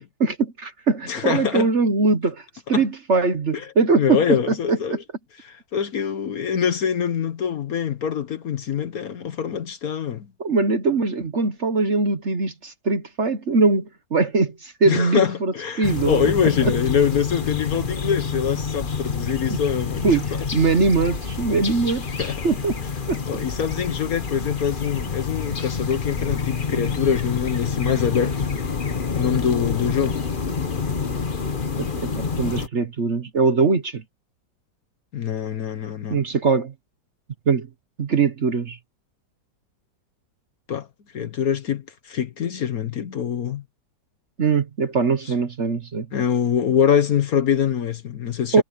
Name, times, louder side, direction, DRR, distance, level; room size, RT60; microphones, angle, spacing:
voice 1, 0.2-5.0 10.4-16.7 19.5-19.6 20.0-20.2 20.5-22.8 23.1-23.2 31.8-31.9 32.1-34.0 36.1-36.7 37.5-37.7 38.0-38.8 44.4-46.1 48.5-48.6, right 4 dB, 40° right, 1.3 m, -22 dB
voice 2, 1.1-1.7 2.7-2.8 3.5-3.7 4.0-5.0 5.4-10.3 14.8-20.2 22.2-22.4 23.3-28.5 29.1-30.2 35.1-36.2 40.7-40.9 41.1-43.6 46.1-48.6, left 8 dB, 55° left, 1.4 m, -24 dB
sound 1, 15.8-32.7, left 5 dB, 30° left, 1.2 m, -27 dB
omnidirectional pair, 2.0 m